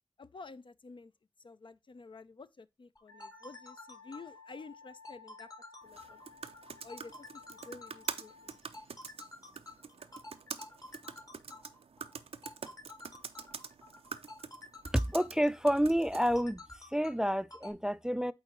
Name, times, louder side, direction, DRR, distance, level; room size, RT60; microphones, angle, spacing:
voice 1, 0.2-1.1 1.4-5.5 5.8-6.2 6.8-8.6, left 3 dB, 55° left, 0.4 m, -51 dB
sound 1, 3.0-17.7, left 2 dB, 35° left, 1.2 m, -51 dB
Wind instrument woodwind instrument, 3.1-8.6, left 5 dB, 85° left, 1.8 m, -57 dB
sound 2, 5.9-16.4, right 6 dB, 85° right, 0.5 m, -46 dB
voice 2, 14.9-16.6 16.9-18.3, equal, 5° right, 0.3 m, -29 dB
8.6 x 3.8 x 2.9 m
cardioid pair, 40°, 10 cm